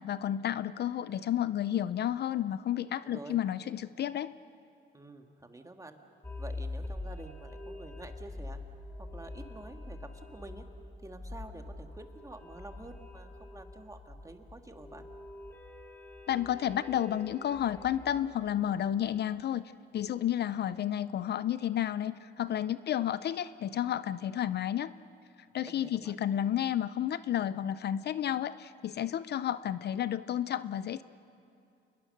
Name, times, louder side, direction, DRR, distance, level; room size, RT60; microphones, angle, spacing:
voice 1, 0.0-4.3 16.3-19.6 19.9-24.9 25.5-31.0, left 11 dB, 55° left, 15 dB, 0.5 m, -31 dB
voice 2, 3.0-3.4 4.9-6.0 6.4-8.6 9.0-10.7 11.0-15.1 25.7-26.2, right 2 dB, 15° right, 5 dB, 1.9 m, -48 dB
sound 1, 6.2-18.5, left 2 dB, 10° left, 2.8 m, -44 dB
28.0 x 21.0 x 6.6 m, 2.6 s
cardioid pair, 90°, 20 cm